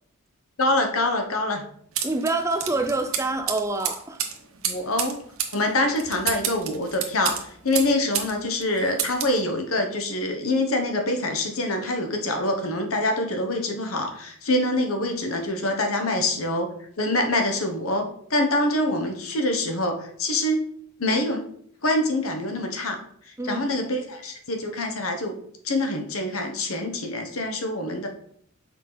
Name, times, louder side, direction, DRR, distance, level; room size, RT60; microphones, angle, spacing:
voice 1, 0.6-1.6 4.6-5.2 5.5-16.7 17.0-20.7 21.0-21.4 21.8-23.0 23.4-25.3 25.6-28.1, left 1 dB, 75° left, 1.2 m, -25 dB
voice 2, 2.0-4.2 23.4-23.7, right 2 dB, 15° right, 0.4 m, -26 dB
sound 1, 2.0-8.3 8.6-9.4, right 8 dB, 70° right, 1.1 m, -30 dB
6.5 x 4.9 x 4.0 m
head